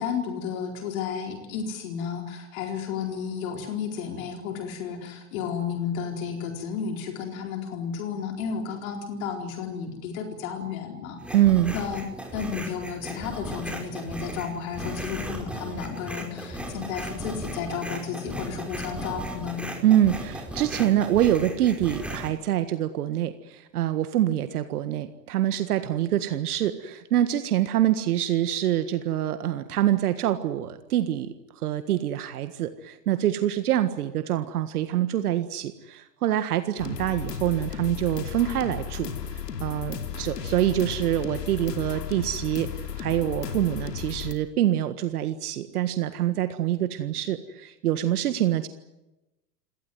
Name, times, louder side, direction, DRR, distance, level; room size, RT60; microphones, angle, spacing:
voice 1, 0.0-11.2 11.7-12.1 12.3-19.6, left 7 dB, 55° left, 3 dB, 4.3 m, -32 dB
sound 1, 11.2-22.3, equal, ahead, 5.1 m, -36 dB
voice 2, 11.3-11.8 19.8-31.3 31.6-42.7 43.0-48.7, right 12 dB, 65° right, 10 dB, 1.7 m, -25 dB
sound 2, 36.8-44.3, left 7 dB, 75° left, 2.9 m, -34 dB
27.0 x 18.0 x 9.6 m, 0.98 s
hypercardioid pair, 100°, 49 cm